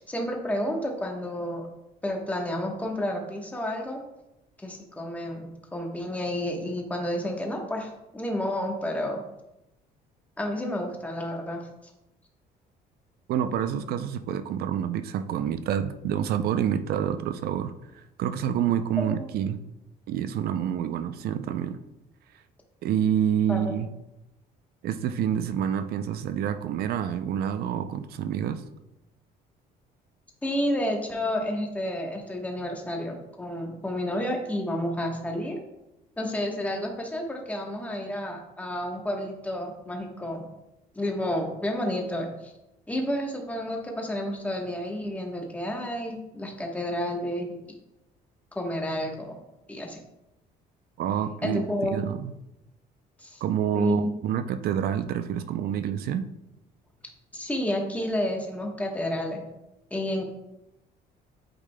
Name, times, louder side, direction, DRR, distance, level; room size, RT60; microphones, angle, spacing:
voice 1, 0.0-1.7 2.0-4.0 4.6-9.2 10.4-11.6 19.0-19.2 23.5-23.6 30.4-35.6 36.2-40.4 40.9-42.5 42.9-47.6 48.5-49.3 49.7-50.0 51.4-52.0 53.2-53.4 53.7-54.1 57.3-59.4 59.9-60.3, left 1 dB, 10° left, 1 dB, 1.1 m, -30 dB
voice 2, 13.3-19.6 20.1-21.8 22.8-23.9 24.8-28.6 51.0-52.3 53.4-56.3, right 9 dB, 65° right, 11 dB, 0.5 m, -28 dB
8.7 x 5.0 x 2.2 m, 0.91 s
cardioid pair, 110°, 17 cm